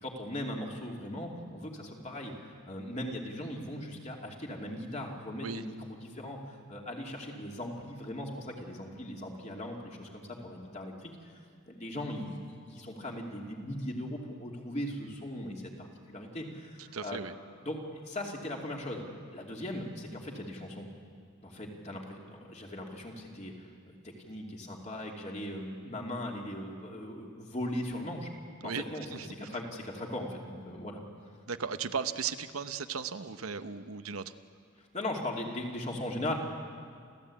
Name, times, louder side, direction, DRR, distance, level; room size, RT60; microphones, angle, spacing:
voice 1, 0.0-11.4 11.7-17.2 17.6-19.0 19.3-20.9 21.4-23.7 24.0-28.3 28.6-31.0 34.8-36.3, left 1 dB, 35° left, 0 dB, 2.7 m, -39 dB
voice 2, 16.9-17.3 28.6-28.8 29.1-29.3 31.5-34.2, right 6 dB, 80° right, 10 dB, 0.9 m, -36 dB
29.5 x 14.0 x 8.6 m, 2.1 s
head